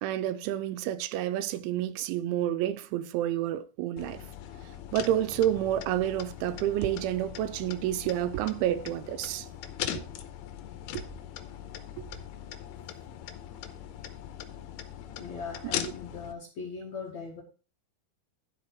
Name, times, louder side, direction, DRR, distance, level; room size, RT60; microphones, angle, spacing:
voice 1, 0.0-4.2 4.9-9.5 10.9-11.0 12.0-12.1, right 12 dB, 85° right, 3.0 m, -29 dB
sound 1, 4.0-16.3, left 10 dB, 80° left, 3.0 m, -40 dB
voice 2, 15.2-17.4, left 5 dB, 55° left, 2.2 m, -39 dB
12.5 x 5.1 x 4.6 m
omnidirectional pair, 5.4 m